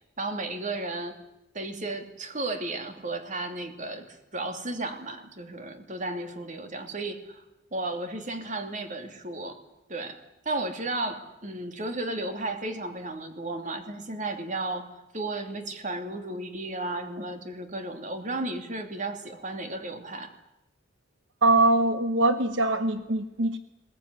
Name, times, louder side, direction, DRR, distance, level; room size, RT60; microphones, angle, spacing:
voice 1, 0.2-1.2 1.5-7.4 7.7-9.6 9.9-10.2 10.4-14.9 15.1-20.3, right 2 dB, 45° right, 6 dB, 2.7 m, -34 dB
voice 2, 21.4-23.6, right 2 dB, 75° right, 11 dB, 0.9 m, -22 dB
21.0 x 19.5 x 9.8 m, 0.92 s
head